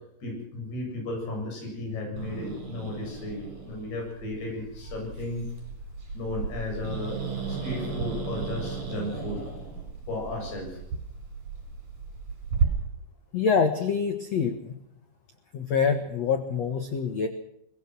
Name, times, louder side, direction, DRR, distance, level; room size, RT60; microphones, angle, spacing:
voice 1, 0.2-5.5 6.1-7.2 7.5-9.4 10.1-10.8, left 2 dB, 55° left, 1 dB, 9.4 m, -34 dB
Growling, 2.2-12.7, right 5 dB, 35° right, 7.5 m, -34 dB
voice 2, 13.3-14.7 15.5-17.3, left 6 dB, 80° left, 7 dB, 1.5 m, -25 dB
23.0 x 19.5 x 6.3 m, 0.78 s
omnidirectional pair, 5.5 m